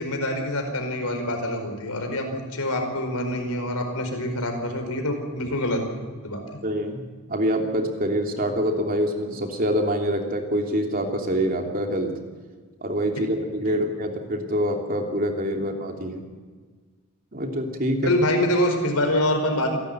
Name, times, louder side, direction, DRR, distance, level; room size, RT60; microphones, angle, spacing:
voice 1, 0.0-5.8 6.2-6.6 13.7-13.8 15.5-15.6 18.0-19.8, left 1 dB, 90° left, 5 dB, 4.9 m, -25 dB
voice 2, 6.6-7.0 7.3-12.1 12.8-16.2 17.3-18.1, equal, 40° right, 2 dB, 3.0 m, -25 dB
28.0 x 12.0 x 9.3 m, 1.5 s
head